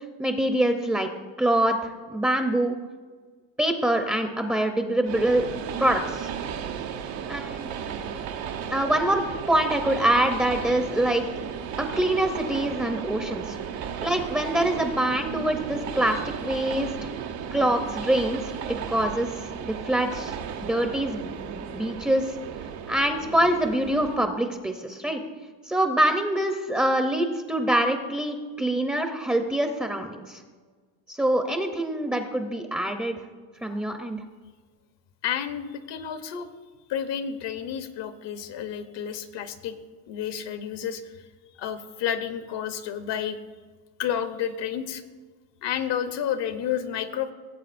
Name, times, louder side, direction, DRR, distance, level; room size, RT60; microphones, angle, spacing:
voice 1, 0.2-1.1 1.4-2.8 3.6-5.4 5.8-6.3 7.3-7.7 8.6-11.2 11.8-13.6 14.0-17.1 17.5-22.3 22.9-25.2 25.7-30.4 31.1-33.2 33.6-34.2, right 1 dB, 5° right, 5 dB, 0.6 m, -25 dB
Train, 5.0-24.2, right 7 dB, 85° right, 1.1 m, -34 dB
voice 2, 35.2-36.5 36.9-39.7 40.1-41.2 41.6-43.4 44.0-45.0 45.6-47.3, left 9 dB, 60° left, 10 dB, 0.9 m, -30 dB
17.0 x 7.7 x 2.5 m, 1.5 s
supercardioid pair, 105°, 49 cm